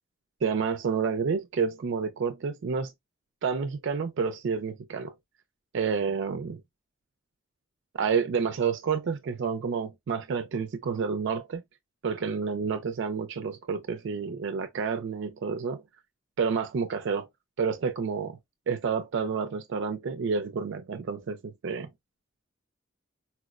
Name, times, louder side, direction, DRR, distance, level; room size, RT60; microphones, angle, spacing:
voice 1, 0.4-2.9 3.4-5.1 5.7-6.6 8.0-11.6 12.0-15.8 16.4-17.3 17.6-18.4 18.7-21.9, right 5 dB, 60° right, 0.4 m, -29 dB
4.3 x 2.0 x 2.3 m
head